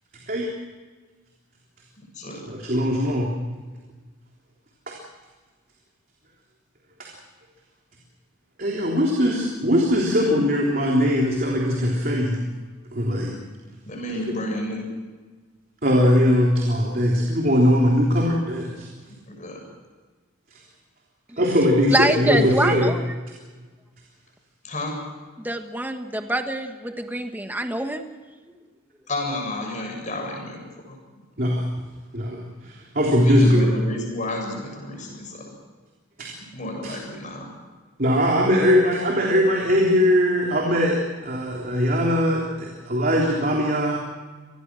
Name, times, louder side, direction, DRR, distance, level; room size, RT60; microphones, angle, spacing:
voice 1, 2.4-3.3 4.9-5.0 7.0-7.1 8.6-12.4 12.9-13.3 14.1-14.2 15.8-18.9 20.5-20.6 21.4-22.9 31.4-31.6 32.1-33.7 36.2-36.3 36.8-36.9 38.0-44.0, equal, 45° right, -1 dB, 3.6 m, -20 dB
voice 2, 13.9-14.8 19.3-19.6 24.6-25.0 29.1-31.0 33.2-35.5 36.5-37.5, left 1 dB, 40° left, 1 dB, 7.6 m, -31 dB
voice 3, 21.9-23.0 25.4-28.0, right 1 dB, 10° right, 6 dB, 1.3 m, -25 dB
27.5 x 20.0 x 6.2 m, 1.4 s
head